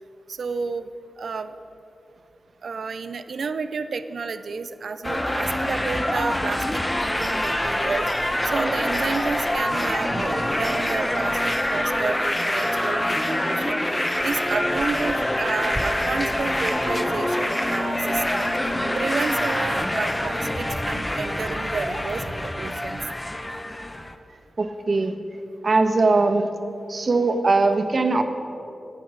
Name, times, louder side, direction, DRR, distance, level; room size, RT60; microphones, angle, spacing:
voice 1, 0.4-0.9 1.2-1.5 2.6-8.1 8.4-13.8 14.2-18.6 18.9-23.0, right 4 dB, 75° right, 11 dB, 0.5 m, -31 dB
sound 1, 5.0-24.1, left 1 dB, 15° left, 0.9 m, -25 dB
Subway metro underground, 7.0-12.1, right 1 dB, 30° right, 1.3 m, -36 dB
sound 2, 14.2-21.5, right 1 dB, 10° right, 0.8 m, -36 dB
voice 2, 24.6-25.2 25.6-26.5 26.9-28.2, right 3 dB, 55° right, 7 dB, 1.0 m, -20 dB
12.0 x 8.8 x 6.3 m, 2.7 s
cardioid pair, 55°, 0 cm